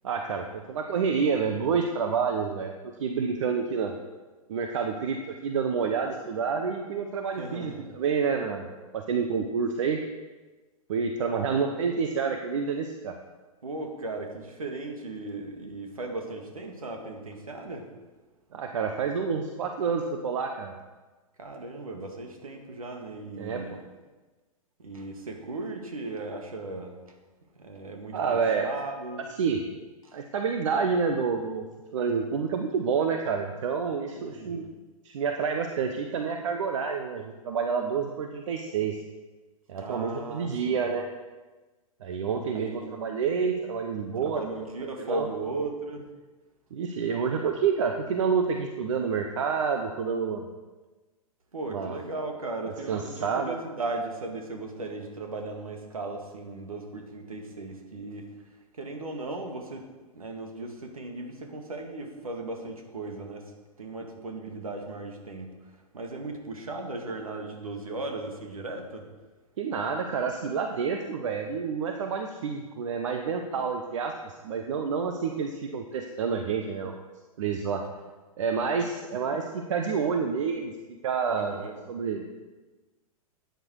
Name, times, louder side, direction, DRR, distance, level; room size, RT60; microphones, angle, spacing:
voice 1, 0.0-2.7 3.0-3.9 4.5-8.7 8.9-10.0 10.9-13.1 18.5-20.7 23.4-23.6 28.1-28.7 29.4-29.6 30.1-31.6 31.9-34.6 35.0-39.0 39.7-41.1 42.0-44.4 44.8-45.3 46.7-50.5 51.7-52.0 52.9-53.6 69.6-77.0 77.4-77.8 78.4-81.6 81.9-82.2, right 6 dB, 55° right, 5 dB, 1.0 m, -28 dB
voice 2, 7.4-7.9 13.6-17.9 21.4-23.8 24.8-27.0 27.6-29.2 30.1-30.2 34.1-34.7 39.8-40.9 42.5-42.9 44.2-46.1 51.5-58.3 58.7-59.9 60.1-63.5 63.8-65.6 65.9-69.1 81.3-81.8, right 2 dB, 70° right, 3 dB, 2.0 m, -37 dB
13.0 x 9.2 x 4.7 m, 1.3 s
figure-of-eight pair, 105°, 19 cm